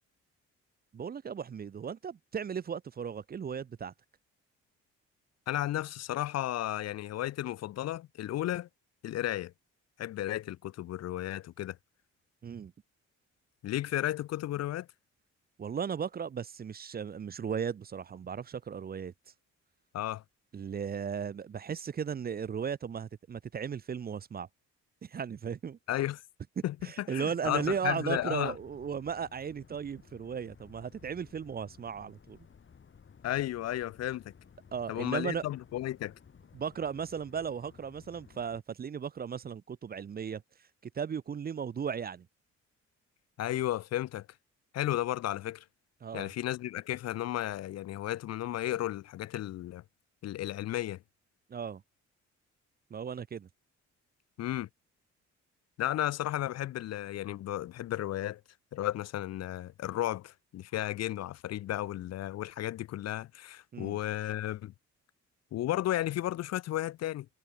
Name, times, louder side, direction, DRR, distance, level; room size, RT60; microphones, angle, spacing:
voice 1, 0.9-3.9 12.4-12.7 15.6-19.1 20.5-24.5 25.0-25.8 26.6-32.4 34.7-35.4 36.5-40.4 41.0-42.3 46.0-46.3 51.5-51.8 52.9-53.5 63.7-64.0, right 7 dB, 30° right, 0.5 m, -36 dB
voice 2, 5.5-8.7 9.0-9.5 10.0-11.8 13.6-14.9 19.9-20.2 25.9-26.2 26.6-28.6 33.2-34.3 34.9-36.1 43.4-44.3 44.7-45.6 46.1-49.8 50.2-51.0 54.4-54.7 55.8-58.4 58.7-64.7 65.5-67.3, left 13 dB, 60° left, 0.5 m, -33 dB
sound 1, 27.4-38.6, left 6 dB, 40° left, 3.1 m, -57 dB
cardioid pair, 90°, 30 cm